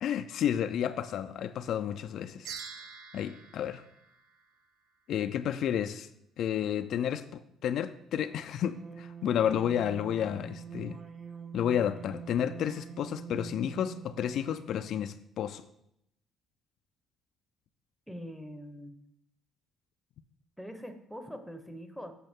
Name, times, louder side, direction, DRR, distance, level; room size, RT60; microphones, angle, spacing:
voice 1, 0.0-2.5 3.1-3.8 5.1-6.1 6.4-11.0 11.5-15.6, left 9 dB, 65° left, 0.3 m, -31 dB
sound 1, 2.5-4.9, right 6 dB, 85° right, 0.8 m, -46 dB
sound 2, 8.2-15.0, right 7 dB, 40° right, 0.6 m, -46 dB
voice 2, 18.1-19.0 20.6-22.1, equal, ahead, 0.8 m, -43 dB
7.8 x 6.0 x 3.6 m
cardioid pair, 95°, 0 cm